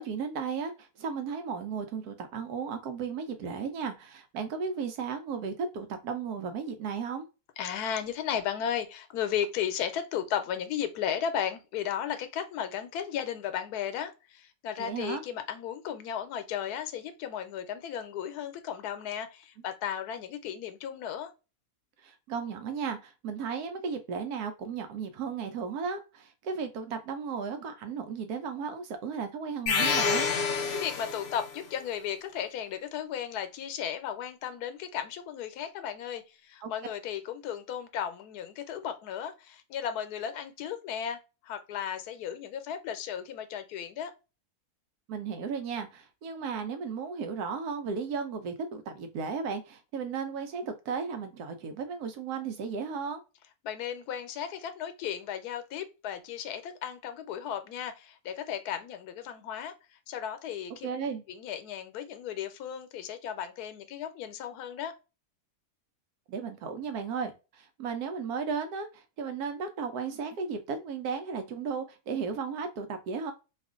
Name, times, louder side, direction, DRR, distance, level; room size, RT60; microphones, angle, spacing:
voice 1, 0.0-7.3 14.8-15.2 22.0-30.3 36.6-36.7 45.1-53.2 60.8-61.2 66.3-73.3, right 5 dB, 85° right, 1.2 m, -35 dB
voice 2, 7.6-21.3 30.7-44.1 53.6-59.7 60.1-60.9 61.3-64.9, left 9 dB, 85° left, 1.1 m, -35 dB
sound 1, 29.7-31.6, left 5 dB, 60° left, 0.7 m, -28 dB
2.8 x 2.5 x 3.6 m
omnidirectional pair, 1.6 m